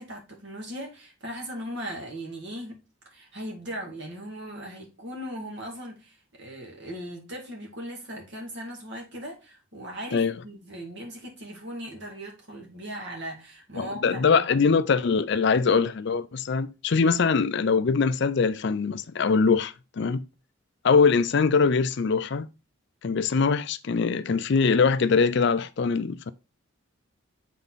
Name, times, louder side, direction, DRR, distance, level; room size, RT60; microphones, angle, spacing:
voice 1, 0.0-2.8 3.1-14.7 21.1-21.2, equal, 55° right, 2.3 m, -38 dB
voice 2, 13.8-20.2 20.8-22.5 23.0-26.3, left 5 dB, 55° left, 0.4 m, -22 dB
7.3 x 4.1 x 4.0 m
head